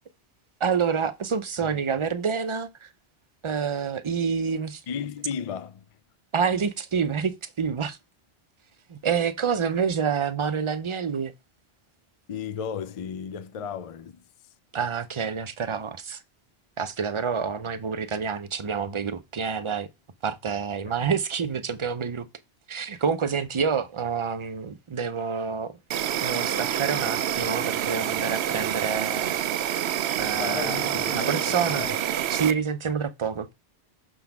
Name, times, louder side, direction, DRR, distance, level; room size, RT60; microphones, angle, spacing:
voice 1, 0.6-2.9 3.4-4.8 6.3-8.0 8.9-11.3 14.7-16.2 16.8-19.9 20.2-22.3 22.7-25.7 26.2-29.9 30.2-31.9 32.3-33.5, right 6 dB, 35° right, 0.6 m, -28 dB
voice 2, 4.9-5.9 12.3-14.3 20.9-21.1 27.7-28.2 30.4-32.0, left 7 dB, 50° left, 0.4 m, -35 dB
Insect, 25.9-32.5, right 10 dB, 80° right, 0.9 m, -27 dB
6.2 x 3.8 x 5.8 m
omnidirectional pair, 1.1 m